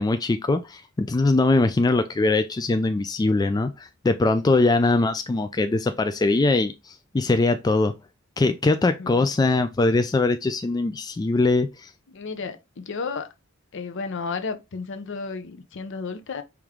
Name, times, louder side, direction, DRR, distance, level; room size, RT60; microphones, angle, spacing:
voice 1, 0.0-7.9 8.4-11.9, left 3 dB, 20° left, 0.3 m, -22 dB
voice 2, 12.1-13.3 13.7-16.4, left 4 dB, 60° left, 0.6 m, -33 dB
4.9 x 3.0 x 3.6 m
head